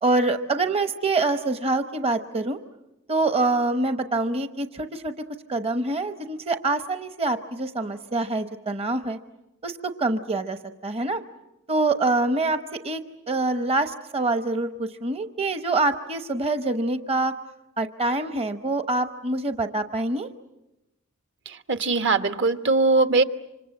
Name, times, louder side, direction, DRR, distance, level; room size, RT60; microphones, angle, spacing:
voice 1, 0.0-2.6 3.1-5.1 5.5-9.2 9.6-11.2 11.7-12.6 12.8-13.0 13.3-17.3 17.8-20.3, right 2 dB, 30° right, 8 dB, 0.9 m, -25 dB
voice 2, 21.7-23.2, right 3 dB, 60° right, 8 dB, 1.3 m, -20 dB
28.0 x 26.0 x 7.6 m, 0.95 s
head